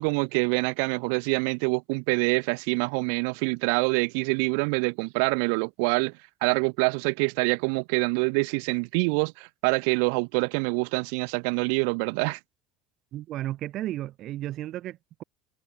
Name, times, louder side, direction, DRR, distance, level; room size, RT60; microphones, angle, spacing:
voice 1, 0.0-6.1 6.4-12.4, right 40 dB or more, 85° right, 0.3 m, -26 dB
voice 2, 13.1-15.2, right 14 dB, 45° right, 1.2 m, -34 dB
cardioid pair, 170°, 0 cm